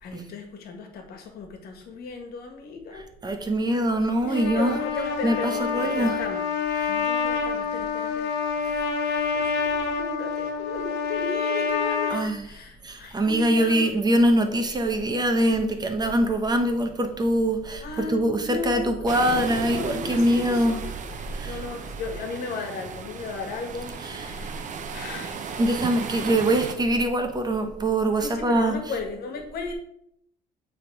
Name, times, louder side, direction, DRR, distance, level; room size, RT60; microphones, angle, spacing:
voice 1, 0.0-3.1 3.7-3.8 4.3-13.9 17.8-25.6 28.2-29.7, left 4 dB, 65° left, 5 dB, 1.5 m, -36 dB
voice 2, 2.9-4.8 5.2-6.2 6.8-6.9 12.1-12.5 12.8-20.8 21.3-21.6 24.0-24.3 25.6-28.7, right 1 dB, 25° right, 5 dB, 1.0 m, -23 dB
Trumpet, 4.2-12.2, left 5 dB, 80° left, 1.1 m, -27 dB
sound 1, 19.1-26.7, right 6 dB, 45° right, 0.8 m, -36 dB
8.4 x 3.7 x 4.7 m, 0.74 s
cardioid pair, 110°, 17 cm